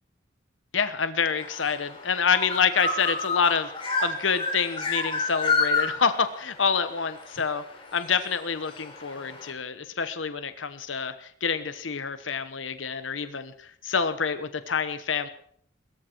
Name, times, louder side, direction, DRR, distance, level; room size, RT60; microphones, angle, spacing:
voice 1, 0.7-7.6 7.9-15.3, left 6 dB, 90° left, 11 dB, 1.1 m, -27 dB
sound 1, 1.4-9.5, left 4 dB, 30° left, 4.2 m, -30 dB
22.0 x 14.0 x 4.6 m, 0.63 s
head